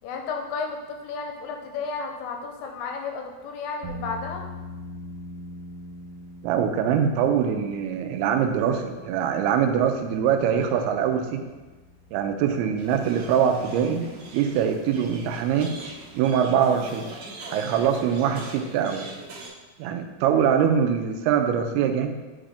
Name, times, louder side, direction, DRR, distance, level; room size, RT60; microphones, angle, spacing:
voice 1, 0.0-4.5, left 4 dB, 80° left, 3 dB, 2.1 m, -33 dB
sound 1, 3.8-16.3, left 1 dB, 75° right, 2.6 m, -44 dB
voice 2, 6.4-11.4 12.1-14.1 14.3-15.7 16.1-17.1 17.5-19.1 19.8-22.2, right 8 dB, 90° right, 5 dB, 2.5 m, -23 dB
sound 2, 12.8-19.5, right 3 dB, 55° right, 1.9 m, -42 dB
8.8 x 3.7 x 3.4 m, 1.2 s
omnidirectional pair, 4.4 m